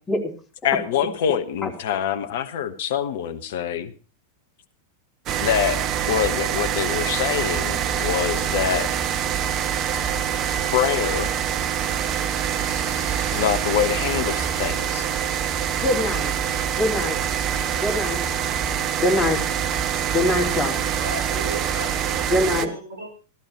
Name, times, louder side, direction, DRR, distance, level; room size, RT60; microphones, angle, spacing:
voice 1, 0.6-3.9 5.4-8.9 10.7-11.4 12.6-15.1, left 9 dB, 55° left, 11 dB, 1.2 m, -25 dB
sound 1, 5.3-22.7, right 8 dB, 35° right, 0.9 m, -25 dB
voice 2, 15.8-16.3 16.8-17.2 17.8-18.2 19.0-19.4 20.1-20.8 22.3-22.7, left 1 dB, 15° left, -2 dB, 3.9 m, -22 dB
voice 3, 20.8-23.1, right 1 dB, 65° right, 3 dB, 5.3 m, -36 dB
15.0 x 13.0 x 4.6 m, 0.36 s
figure-of-eight pair, 90°, 0 cm